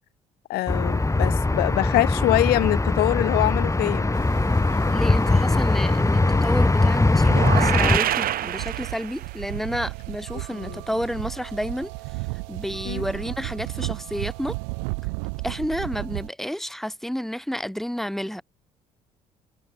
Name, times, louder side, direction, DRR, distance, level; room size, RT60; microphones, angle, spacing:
voice 1, 0.5-4.1 10.5-10.8 12.8-13.0, left 17 dB, 70° left, 7.6 m, -24 dB
sound 1, 0.7-8.0, left 2 dB, 20° left, 7.7 m, -21 dB
sound 2, 4.1-16.3, right 40 dB or more, 75° right, 6.7 m, -35 dB
voice 2, 4.9-11.9 12.5-14.6 15.4-18.4, equal, ahead, 6.8 m, -30 dB
sound 3, 7.2-9.4, right 12 dB, 60° right, 3.9 m, -26 dB
hypercardioid pair, 50°, 17 cm